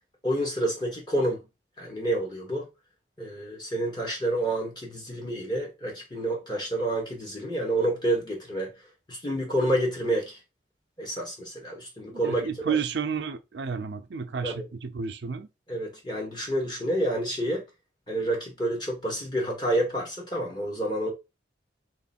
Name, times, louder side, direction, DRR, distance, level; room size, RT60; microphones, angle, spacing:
voice 1, 0.2-1.4 1.8-2.7 3.2-8.7 9.1-10.4 11.0-12.8 14.4-14.5 15.7-17.6 18.1-21.1, right 1 dB, 25° left, 1.2 m, -29 dB
voice 2, 12.1-15.5, right 6 dB, 75° right, 0.5 m, -31 dB
3.1 x 3.0 x 4.2 m
head